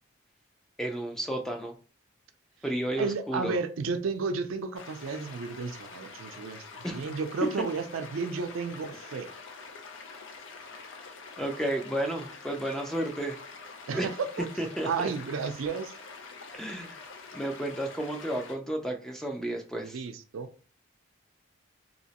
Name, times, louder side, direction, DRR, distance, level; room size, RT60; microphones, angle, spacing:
voice 1, 0.8-1.7 2.6-3.5 6.8-7.0 10.7-10.8 11.4-13.4 13.9-14.1 14.6-14.9 16.5-17.0 17.3-20.0, right 1 dB, ahead, 2 dB, 0.4 m, -32 dB
voice 2, 3.0-9.3 13.9-14.5 14.8-15.9 19.8-20.5, right 4 dB, 85° right, 9 dB, 0.4 m, -32 dB
sound 1, 4.7-18.6, left 4 dB, 70° left, 0.5 m, -46 dB
3.0 x 2.8 x 2.8 m, 0.38 s
head